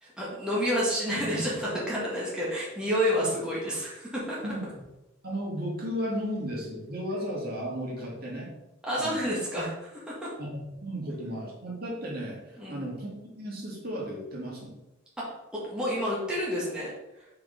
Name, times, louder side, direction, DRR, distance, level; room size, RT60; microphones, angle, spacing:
voice 1, 0.0-4.4 8.8-10.3 12.6-12.9 15.6-16.9, equal, 5° right, -7 dB, 1.6 m, -29 dB
voice 2, 5.2-8.5 9.0-9.3 10.4-13.1 13.4-14.8, equal, 50° right, -3 dB, 2.1 m, -34 dB
5.1 x 4.9 x 5.0 m, 0.96 s
head